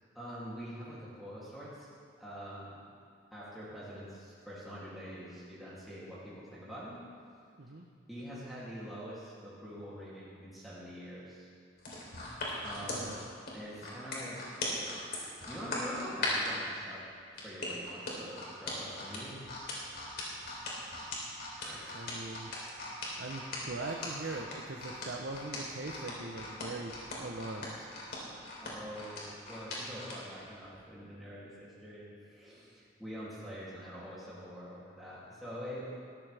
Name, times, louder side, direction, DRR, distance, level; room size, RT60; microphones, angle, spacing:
voice 1, 0.1-1.9 2.2-2.8 3.3-7.0 8.1-11.5 12.6-13.1 13.5-14.4 14.8-17.0 17.4-19.4 21.6-22.0 28.6-35.8, equal, ahead, -10 dB, 2.9 m, -45 dB
sound 1, 11.8-16.6 17.4-30.2 30.6-30.8, left 2 dB, 55° left, 3.5 m, -39 dB
voice 2, 12.8-13.2 21.9-22.5 23.2-27.9, right 2 dB, 75° right, 0 dB, 0.9 m, -41 dB
20.0 x 13.5 x 3.5 m, 2.2 s
head